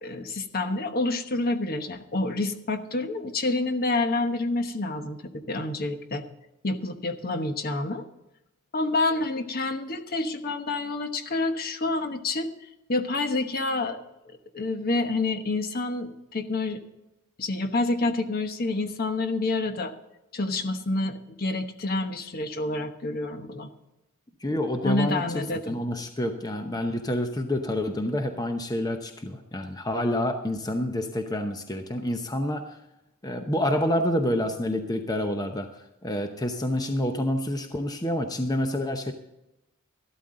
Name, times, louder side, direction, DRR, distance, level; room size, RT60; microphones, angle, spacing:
voice 1, 0.0-6.2 6.6-8.0 8.7-12.5 12.9-14.0 14.3-16.8 17.4-19.9 20.3-23.7 24.8-25.8, left 2 dB, 45° left, 8 dB, 1.1 m, -28 dB
voice 2, 24.4-32.7 33.2-35.7 36.0-39.1, left 1 dB, 20° left, 6 dB, 0.8 m, -28 dB
13.0 x 12.5 x 3.8 m, 0.93 s
head